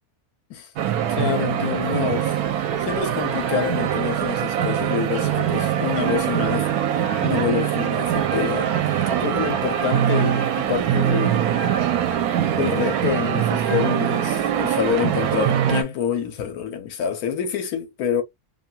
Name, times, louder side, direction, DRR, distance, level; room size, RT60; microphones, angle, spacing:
sound 1, 0.8-15.8, right 10 dB, 80° right, 1.1 m, -22 dB
voice 1, 1.1-2.4 2.8-6.7 7.2-8.7 9.2-11.4 12.5-18.2, left 9 dB, 85° left, 1.3 m, -27 dB
2.9 x 2.2 x 2.6 m
omnidirectional pair, 1.6 m